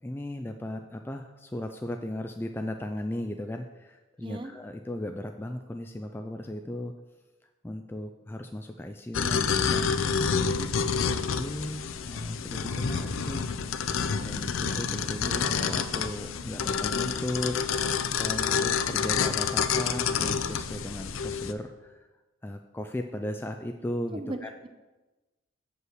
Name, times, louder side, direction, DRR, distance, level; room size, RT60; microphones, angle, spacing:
voice 1, 0.0-6.9 7.6-10.0 11.2-13.9 14.2-17.9 18.1-22.1 22.4-24.5, left 1 dB, 10° left, 5 dB, 0.3 m, -36 dB
voice 2, 4.2-4.5 10.5-10.7 24.1-24.7, right 2 dB, 25° right, 7 dB, 0.6 m, -37 dB
sound 1, 9.1-21.5, left 6 dB, 85° left, 0.5 m, -28 dB
7.7 x 5.4 x 6.5 m, 1.1 s
head